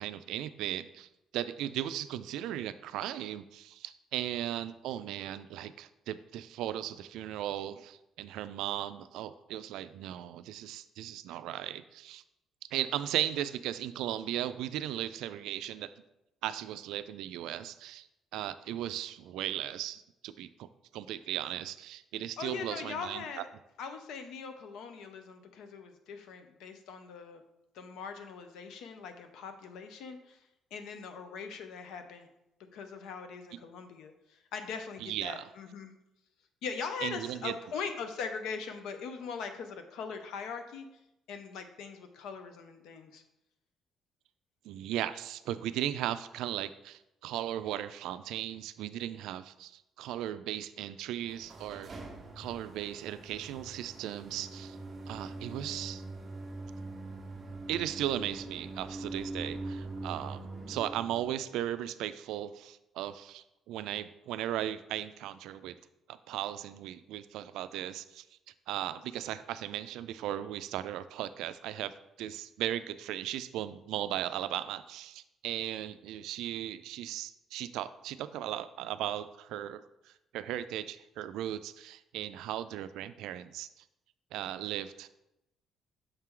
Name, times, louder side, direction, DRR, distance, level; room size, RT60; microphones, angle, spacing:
voice 1, 0.0-12.2 12.7-15.9 16.4-18.1 18.3-23.4 35.0-35.5 37.0-37.5 44.6-51.9 52.4-54.8 55.1-56.0 57.7-65.8 66.1-68.2 68.7-83.7 84.3-85.1, right 12 dB, 85° right, 13 dB, 0.3 m, -37 dB
voice 2, 22.4-23.5 23.8-27.4 27.7-30.4 30.7-32.3 32.7-35.9 36.6-40.9 41.3-43.2, left 5 dB, 75° left, 7 dB, 0.7 m, -41 dB
sound 1, 51.1-61.4, right 2 dB, 25° right, 0.8 m, -43 dB
6.6 x 4.5 x 3.7 m, 0.88 s
cardioid pair, 160°, 0 cm